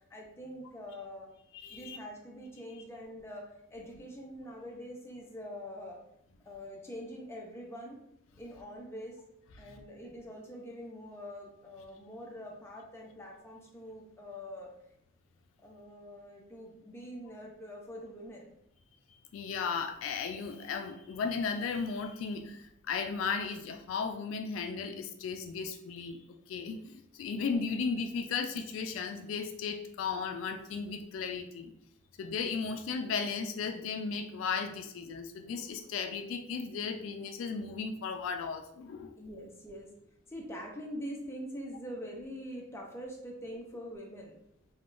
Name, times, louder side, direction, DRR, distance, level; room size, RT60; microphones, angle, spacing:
voice 1, 0.1-1.3 1.7-6.0 6.4-8.0 8.4-9.2 9.6-14.8 15.6-18.5 39.2-39.9 40.3-44.3, equal, 15° left, -1 dB, 0.5 m, -44 dB
voice 2, 1.5-2.0 9.7-9.8 19.3-31.7 32.2-39.1, left 5 dB, 80° left, 7 dB, 0.3 m, -35 dB
3.5 x 2.2 x 2.5 m, 0.77 s
head